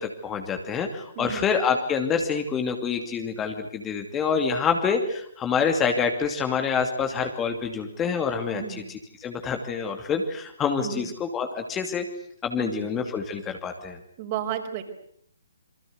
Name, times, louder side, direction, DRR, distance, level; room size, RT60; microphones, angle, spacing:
voice 1, 0.0-12.0 12.4-14.0, left 6 dB, 15° left, 5 dB, 2.7 m, -27 dB
voice 2, 1.1-1.5 8.5-8.9 10.8-11.1 12.6-12.9 14.2-14.8, right 10 dB, 35° right, 5 dB, 5.3 m, -33 dB
28.0 x 24.5 x 8.1 m, 0.67 s
figure-of-eight pair, 135°, 0 cm